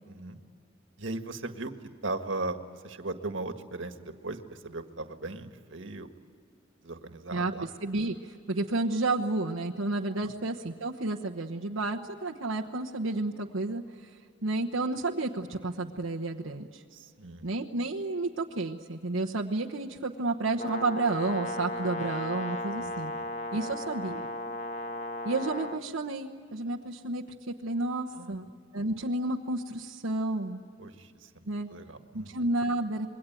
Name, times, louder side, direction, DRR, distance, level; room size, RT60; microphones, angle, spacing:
voice 1, 0.1-0.4 1.0-1.7 2.0-2.6 2.8-6.1 6.8-7.7 10.2-10.3 16.9-17.5 22.8-23.3 23.6-23.7 28.1-28.4 30.8-32.4, right 2 dB, 70° right, 7 dB, 1.7 m, -38 dB
voice 2, 7.3-14.1 14.4-16.8 17.4-23.1 23.5-24.3 25.2-28.5 28.7-30.6 31.5-31.7 32.1-33.1, right 2 dB, 85° right, 1 dB, 1.1 m, -31 dB
Brass instrument, 20.6-25.8, left 1 dB, 35° left, 1.3 m, -35 dB
27.0 x 22.5 x 9.1 m, 2.2 s
head